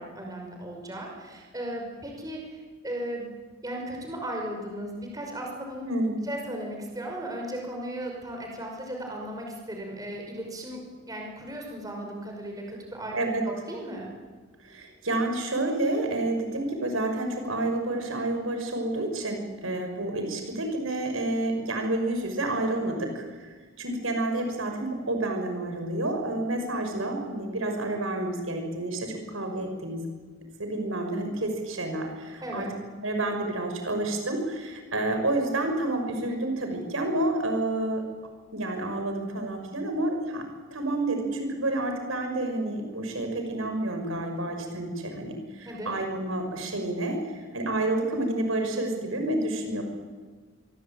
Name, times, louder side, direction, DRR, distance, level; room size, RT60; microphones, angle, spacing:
voice 1, 0.0-3.3 3.6-5.8 6.3-13.2 13.5-14.1 32.4-32.7 45.7-45.9, right 1 dB, 15° right, 0 dB, 5.7 m, -36 dB
voice 2, 14.6-23.5 23.8-30.0 30.6-32.7 33.0-38.0 38.5-40.5 40.7-49.8, right 2 dB, 85° right, 5 dB, 5.9 m, -29 dB
27.5 x 23.5 x 9.0 m, 1.4 s
head